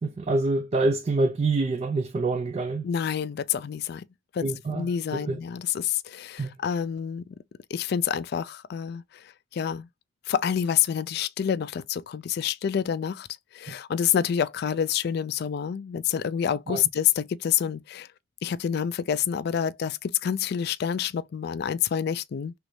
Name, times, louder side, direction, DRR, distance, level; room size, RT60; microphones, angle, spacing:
voice 1, 0.0-2.9 4.4-5.4 6.4-6.5 13.7-13.8 16.7-16.8, right 3 dB, 35° right, 0.3 m, -26 dB
voice 2, 2.8-4.1 4.3-7.3 7.7-9.0 9.5-9.9 10.3-13.3 13.5-18.1 18.4-22.5, left 8 dB, 55° left, 0.3 m, -27 dB
3.1 x 2.6 x 3.1 m
head